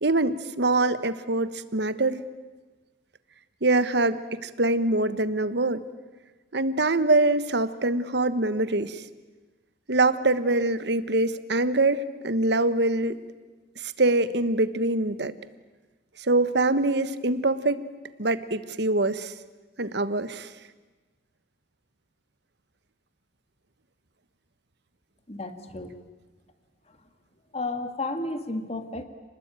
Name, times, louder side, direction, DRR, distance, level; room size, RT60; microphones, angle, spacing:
voice 1, 0.0-2.2 3.6-5.8 6.5-9.0 9.9-13.2 13.8-15.3 16.3-17.8 18.2-19.3 19.8-20.5, right 2 dB, 65° right, 13 dB, 1.3 m, -24 dB
voice 2, 25.3-26.0 27.5-29.0, left 2 dB, 35° left, 8 dB, 2.1 m, -32 dB
29.5 x 20.5 x 9.0 m, 1.3 s
head